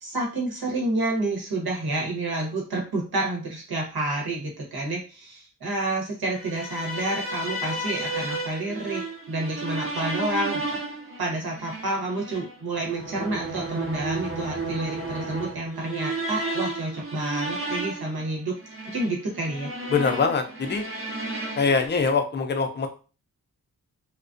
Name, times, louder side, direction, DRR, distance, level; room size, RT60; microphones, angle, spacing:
voice 1, 0.0-9.0 9.3-10.8 11.2-18.5 18.9-19.7, right 2 dB, 80° right, 0 dB, 1.0 m, -29 dB
sound 1, 6.3-21.9, right 2 dB, 35° right, 0.8 m, -33 dB
voice 2, 19.9-20.9 21.6-22.9, left 5 dB, 30° left, 6 dB, 0.4 m, -23 dB
2.3 x 2.1 x 2.5 m, 0.35 s
wide cardioid pair, 75°, 36 cm